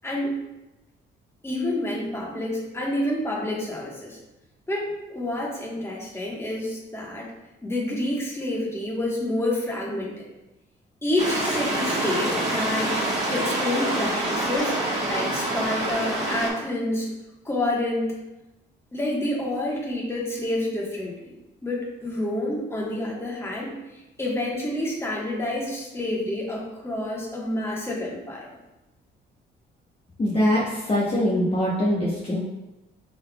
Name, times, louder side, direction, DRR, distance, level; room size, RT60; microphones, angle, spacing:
voice 1, 0.0-0.4 1.4-4.2 4.7-7.3 7.6-10.2 11.0-13.0 13.3-14.8 15.0-17.1 17.4-18.1 18.9-21.3 21.6-23.7 24.2-28.5, left 1 dB, 10° left, -3 dB, 1.3 m, -28 dB
sound 1, 11.2-16.5, right 1 dB, 35° right, 1.4 m, -26 dB
voice 2, 30.2-32.4, equal, 30° left, -6 dB, 1.0 m, -23 dB
5.2 x 4.0 x 2.3 m, 0.98 s
cardioid pair, 90°, 20 cm